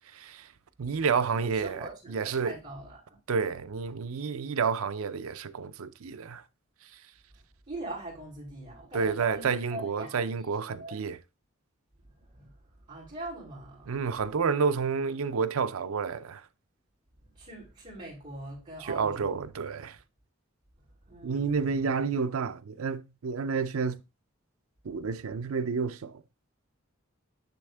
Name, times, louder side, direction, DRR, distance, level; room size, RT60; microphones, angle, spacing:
voice 1, 0.1-0.5 0.8-2.5 3.3-6.4 8.9-11.2 13.9-16.5 18.8-20.0 21.2-24.0 24.8-26.2, right 5 dB, 85° right, 0.5 m, -30 dB
voice 2, 1.5-3.2 7.7-11.0 12.0-14.0 17.3-19.5 21.1-21.8, right 1 dB, 35° right, 3.5 m, -42 dB
9.9 x 3.5 x 3.4 m
head